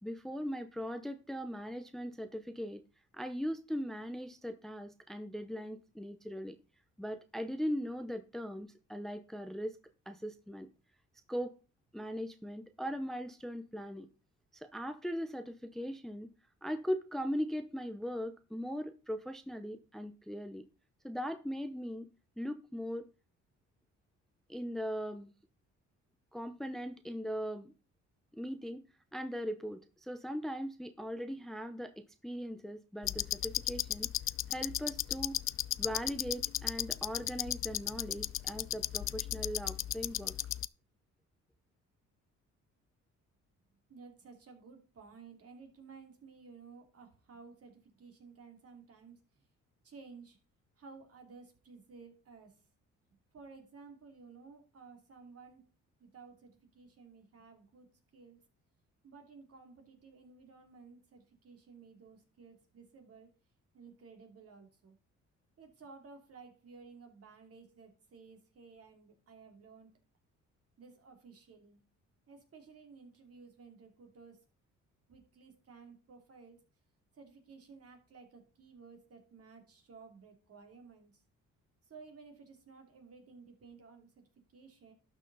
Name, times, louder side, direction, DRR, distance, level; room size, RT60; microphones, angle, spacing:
voice 1, 0.0-2.8 3.1-6.6 7.0-9.8 10.1-10.7 11.3-11.6 11.9-14.1 14.5-16.3 16.6-20.7 21.0-22.1 22.4-23.1 24.5-25.3 26.3-27.7 28.3-28.8 29.1-34.1 34.5-35.4 35.8-40.3, equal, ahead, 9 dB, 0.7 m, -39 dB
sound 1, 33.0-40.7, left 12 dB, 45° left, 0.4 m, -36 dB
voice 2, 43.9-49.4 49.8-50.4 50.8-52.6 53.3-55.7 56.0-58.4 59.0-63.3 63.7-65.0 65.6-69.9 70.8-71.8 72.3-74.4 75.1-76.6 77.1-81.2 81.8-84.9, right 4 dB, 50° right, 4 dB, 2.8 m, -55 dB
12.0 x 6.3 x 4.0 m, 0.34 s
cardioid pair, 90°, 30 cm